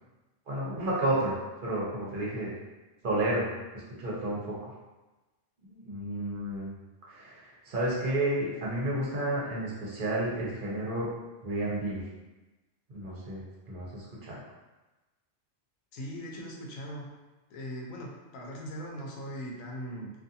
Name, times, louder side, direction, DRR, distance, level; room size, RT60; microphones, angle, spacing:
voice 1, 0.5-1.3 1.6-2.5 3.0-4.7 5.7-6.7 7.1-11.1 11.4-12.0 12.9-14.4, right 1 dB, 50° right, -5 dB, 0.7 m, -31 dB
voice 2, 15.9-17.1 17.5-20.1, equal, 85° left, -1 dB, 1.0 m, -40 dB
2.5 x 2.4 x 2.6 m, 1.1 s
omnidirectional pair, 1.4 m